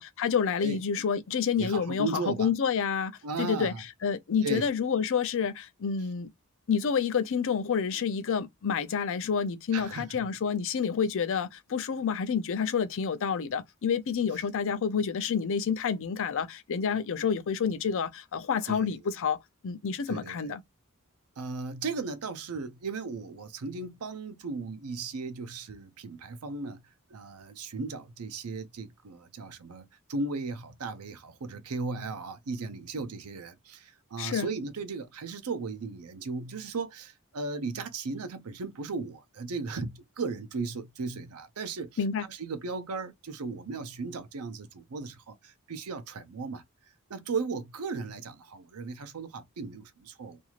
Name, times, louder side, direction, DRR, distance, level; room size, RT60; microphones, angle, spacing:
voice 1, 0.0-3.7 4.0-6.3 6.7-19.4 19.6-20.6 34.2-34.5 42.0-42.2, left 6 dB, 60° left, 0.5 m, -29 dB
voice 2, 1.6-2.5 3.2-3.8 4.4-4.7 9.7-10.3 18.7-19.0 20.1-20.4 21.4-26.8 27.1-46.6 47.1-50.4, right 4 dB, 85° right, 0.6 m, -36 dB
2.6 x 2.4 x 2.9 m
head